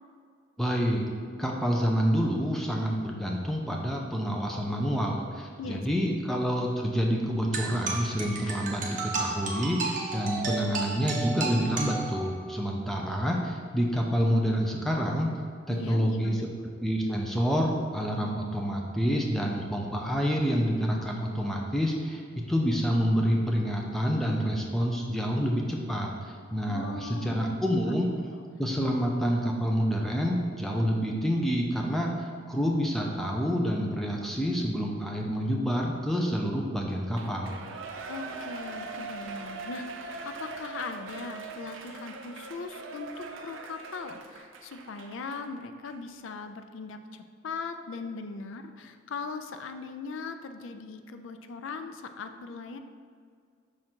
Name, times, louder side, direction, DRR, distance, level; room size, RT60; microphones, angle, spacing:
voice 1, 0.6-1.1 1.4-15.4 15.7-16.5 16.8-22.2 22.5-28.1 28.6-37.6, equal, ahead, -1 dB, 0.5 m, -28 dB
voice 2, 5.6-6.2 15.7-16.5 26.7-27.5 27.8-27.9 28.4-28.5 38.1-52.8, left 4 dB, 80° left, 8 dB, 0.4 m, -39 dB
sound 1, 7.5-12.5, right 3 dB, 40° right, 0.7 m, -33 dB
Shout / Cheering, 37.1-45.5 45.9-46.0, right 4 dB, 80° right, 0.5 m, -41 dB
6.3 x 3.7 x 4.4 m, 2.1 s
head